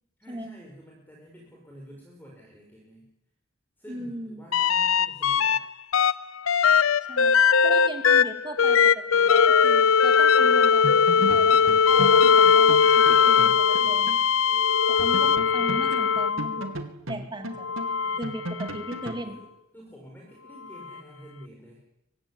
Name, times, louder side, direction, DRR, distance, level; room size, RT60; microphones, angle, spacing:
voice 1, 0.2-3.1 3.8-5.6 15.1-15.3 17.9-18.2 19.2-19.5 19.7-21.8, equal, 10° left, -2 dB, 5.7 m, -48 dB
voice 2, 3.9-4.4 7.1-7.3 7.6-11.6 11.9-14.3 14.9-16.8 17.1-17.7 18.2-19.4, right 1 dB, 20° right, 6 dB, 2.7 m, -38 dB
sound 1, 4.5-5.6 5.9-16.7 17.6-19.1 20.8-20.9, left 6 dB, 90° left, 0.8 m, -20 dB
sound 2, 10.4-10.6 10.8-14.3 14.5-14.6 15.0-19.3, right 1 dB, 80° right, 2.6 m, -36 dB
24.0 x 17.0 x 10.0 m, 0.86 s
head